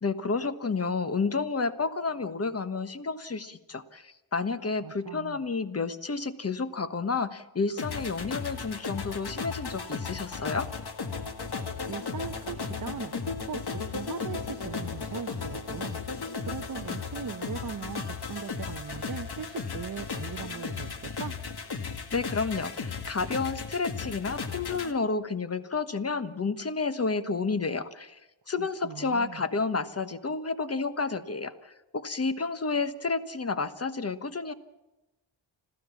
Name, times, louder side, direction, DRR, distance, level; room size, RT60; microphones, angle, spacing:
voice 1, 0.0-10.7 22.1-28.2 28.5-34.5, left 4 dB, 30° left, 11 dB, 1.2 m, -30 dB
voice 2, 4.8-5.4 11.9-13.1 13.4-16.0 16.4-21.4 28.6-29.4, right 7 dB, 40° right, 5 dB, 0.8 m, -39 dB
sound 1, 7.8-24.9, left 5 dB, 50° left, 1.8 m, -35 dB
26.0 x 15.5 x 7.2 m, 0.99 s
wide cardioid pair, 90°, 48 cm